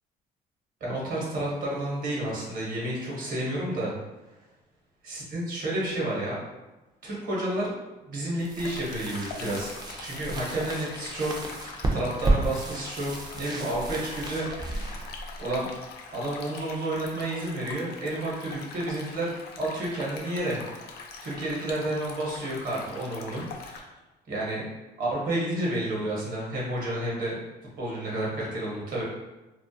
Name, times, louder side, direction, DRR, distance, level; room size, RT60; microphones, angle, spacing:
voice 1, 0.8-3.9 5.0-6.4 7.0-7.7 8.0-11.3 11.6-14.9 15.4-15.7 16.1-20.9 21.2-23.9 24.3-24.7 25.0-27.4 27.8-29.0, right 1 dB, 55° right, -4 dB, 1.0 m, -31 dB
sound 1, 8.4-16.1, right 2 dB, 25° right, 0.4 m, -33 dB
Stream, 8.6-23.8, left 4 dB, 75° left, 0.4 m, -43 dB
2.3 x 2.1 x 2.6 m, 1.1 s
cardioid pair, 110°, 17 cm